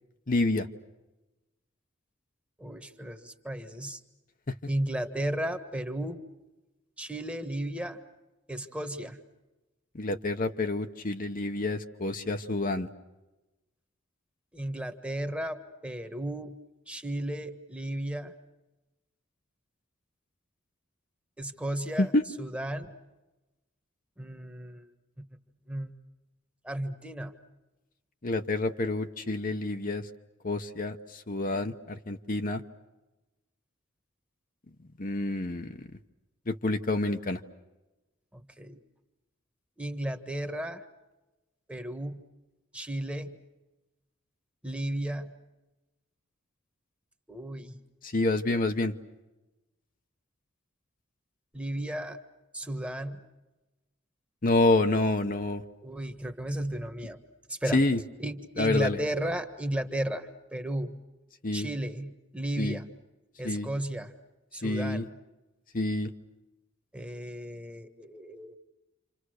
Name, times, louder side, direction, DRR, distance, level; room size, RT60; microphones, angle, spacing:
voice 1, 0.3-0.7 9.9-12.9 22.0-22.2 28.2-30.0 30.4-32.6 35.0-35.8 36.5-37.4 48.0-48.9 54.4-55.6 57.7-58.0 58.6-59.0 61.4-61.7 62.6-62.8 63.4-63.7 64.6-65.0 65.7-66.1, left 2 dB, 45° left, 6 dB, 1.0 m, -28 dB
voice 2, 2.6-4.0 4.7-6.2 7.0-8.0 8.5-9.2 14.5-16.6 16.9-18.3 21.4-22.1 22.4-22.9 24.2-24.9 25.7-25.9 26.6-27.3 38.3-38.8 39.8-40.8 41.7-42.2 42.7-43.4 44.6-45.3 47.3-47.8 51.5-52.2 52.5-53.2 55.8-57.2 57.5-57.8 58.2-61.0 61.5-62.9 63.4-64.1 64.5-65.1 66.9-68.6, right 1 dB, 5° right, 7 dB, 1.5 m, -34 dB
29.0 x 27.0 x 6.5 m, 1.1 s
head